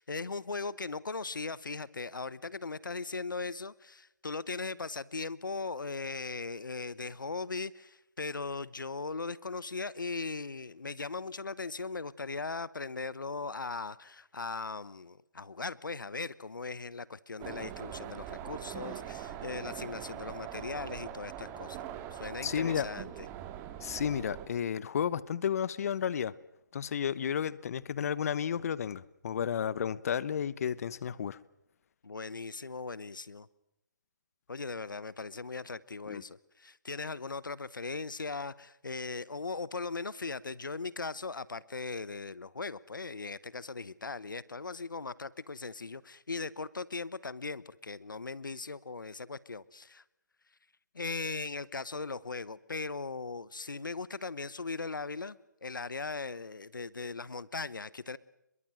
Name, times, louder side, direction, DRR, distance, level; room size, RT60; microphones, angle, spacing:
voice 1, 0.0-21.8 22.1-23.1 32.0-33.5 34.5-50.0 50.9-58.2, left 4 dB, 85° left, 1.0 m, -39 dB
sound 1, 17.4-24.5, right 10 dB, 20° right, 2.3 m, -42 dB
voice 2, 22.4-22.9 23.8-26.3 26.7-31.4 36.1-36.2, left 8 dB, 50° left, 1.0 m, -32 dB
28.5 x 22.0 x 7.7 m
figure-of-eight pair, 145°, 10 cm